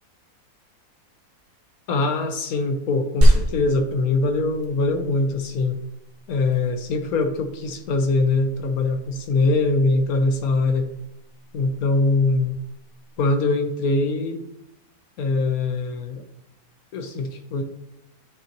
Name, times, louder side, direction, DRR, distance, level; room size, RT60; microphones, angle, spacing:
voice 1, 1.9-5.8 6.3-10.9 11.5-12.6 13.2-14.4 15.2-16.2 16.9-17.6, left 3 dB, 70° left, 6 dB, 1.2 m, -22 dB
sound 1, 3.2-13.2, right 1 dB, 40° right, 1.2 m, -26 dB
10.0 x 5.7 x 2.9 m, 0.82 s
omnidirectional pair, 1.6 m